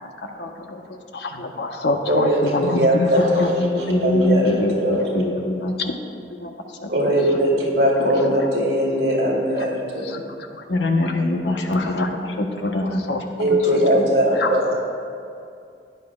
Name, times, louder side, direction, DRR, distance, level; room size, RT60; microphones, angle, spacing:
voice 1, 0.3-1.0 1.4-1.5 2.6-5.9 6.4-6.9 8.0-8.4 10.7-12.1 12.4-13.0 13.4-13.6 13.9-14.1, left 1 dB, 80° left, 2 dB, 1.1 m, -24 dB
voice 2, 1.1-2.8 3.1-3.5 8.3-8.5 9.6-9.7 10.0-10.6 11.0-11.1 11.7-12.3 12.8-13.2 14.4-14.8, left 2 dB, 60° left, 5 dB, 0.7 m, -28 dB
voice 3, 2.1-3.7 4.0-5.1 6.9-10.0 13.4-14.8, equal, 60° right, -4 dB, 2.7 m, -20 dB
16.0 x 10.0 x 2.4 m, 2.4 s
head